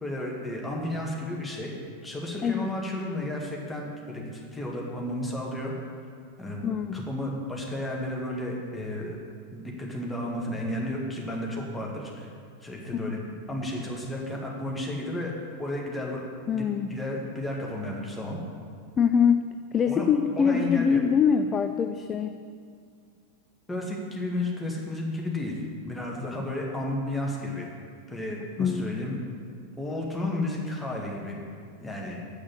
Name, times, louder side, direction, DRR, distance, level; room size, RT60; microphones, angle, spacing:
voice 1, 0.0-5.7 6.4-9.2 9.5-12.3 12.6-15.3 15.6-16.2 16.5-18.4 19.9-20.1 20.4-21.0 23.7-25.6 25.8-27.7 28.1-29.2 29.8-31.4 31.8-32.2, left 1 dB, 5° left, -2 dB, 2.0 m, -33 dB
voice 2, 6.6-7.0 12.9-13.2 16.5-17.0 19.0-22.4 28.6-28.9, left 7 dB, 25° left, 8 dB, 0.4 m, -24 dB
8.0 x 6.1 x 7.5 m, 2.2 s
figure-of-eight pair, 90°, 0 cm